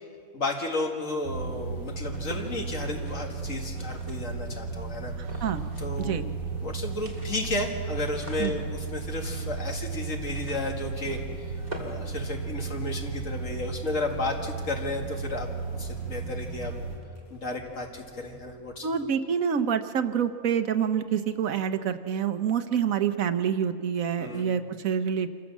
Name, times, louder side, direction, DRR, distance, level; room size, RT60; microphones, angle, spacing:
voice 1, 0.3-5.1 5.8-6.2 6.6-16.7 17.3-18.9 24.2-24.5, left 2 dB, 65° left, 2 dB, 2.3 m, -33 dB
sound 1, 1.2-17.0, right 4 dB, 55° right, 5.5 m, -35 dB
sound 2, 2.1-4.6 5.2-6.1 6.3-6.4 6.7-12.9, right 1 dB, 30° right, 2.6 m, -46 dB
sound 3, 2.4-18.7, left 1 dB, 10° left, 3.5 m, -53 dB
voice 2, 5.2-5.6 6.0-6.2 8.4-8.5 18.8-25.3, right 8 dB, 75° right, 9 dB, 1.3 m, -27 dB
26.5 x 15.0 x 7.3 m, 2.3 s
omnidirectional pair, 1.5 m